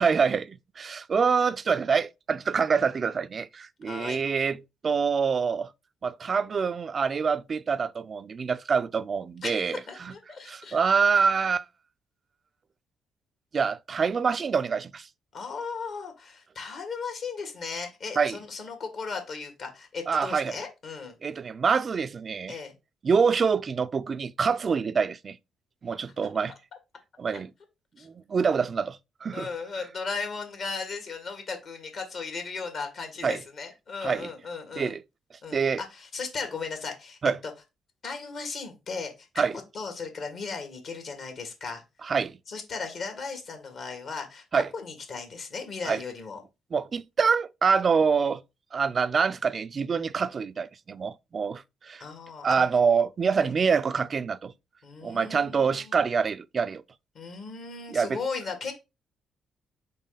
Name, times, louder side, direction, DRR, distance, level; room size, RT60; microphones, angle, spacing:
voice 1, 0.0-5.7 6.0-10.1 10.5-11.6 13.5-15.1 18.2-18.4 20.1-20.6 21.2-22.6 23.0-25.4 25.8-26.5 27.2-27.5 28.0-29.5 33.2-33.4 34.0-34.3 34.8-35.0 35.5-35.8 37.2-37.4 39.4-39.6 42.0-42.4 44.5-44.7 45.9-46.0 46.7-48.4 48.7-52.0 52.4-54.5 55.0-56.8 57.9-58.2, right 5 dB, 45° right, 0.4 m, -26 dB
voice 2, 3.8-4.2 9.4-10.8 15.3-21.2 22.5-22.7 27.3-27.4 28.0-28.1 29.3-34.9 35.4-37.5 38.0-39.4 39.7-41.8 42.5-46.4 52.0-52.7 53.4-53.5 54.8-56.1 57.1-58.7, left 4 dB, 60° left, 1.6 m, -36 dB
4.1 x 3.3 x 3.9 m
hypercardioid pair, 45°, 0 cm